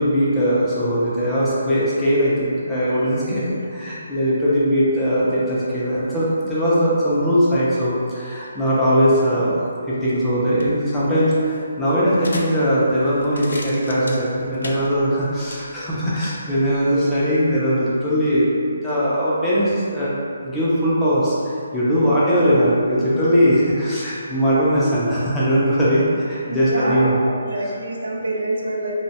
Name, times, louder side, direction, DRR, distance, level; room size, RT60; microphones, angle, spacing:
voice 1, 0.0-9.5 9.9-20.1 20.4-27.1, equal, 5° left, -10 dB, 0.3 m, -20 dB
sound 1, 10.4-16.3, left 2 dB, 85° left, 0.4 m, -38 dB
voice 2, 26.5-28.9, right 1 dB, 70° right, -1 dB, 0.5 m, -26 dB
2.9 x 2.1 x 2.7 m, 2.3 s
hypercardioid pair, 175°, 0 cm